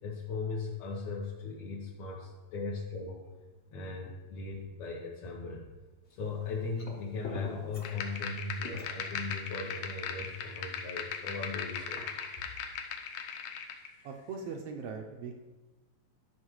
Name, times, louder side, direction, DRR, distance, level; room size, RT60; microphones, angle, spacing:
voice 1, 0.0-3.2 3.7-5.7 6.1-12.0, left 3 dB, 75° left, -4 dB, 2.2 m, -38 dB
sound 1, 6.1-7.0 7.2-7.9 8.2-8.4 8.6-8.9 9.5-9.6 10.9-13.0, left 2 dB, 40° left, 0.9 m, -45 dB
sound 2, 7.8-13.9, left 7 dB, 90° left, 2.2 m, -39 dB
voice 2, 14.0-15.4, right 5 dB, 85° right, 3 dB, 1.3 m, -40 dB
12.5 x 5.8 x 3.1 m, 1.2 s
omnidirectional pair, 3.4 m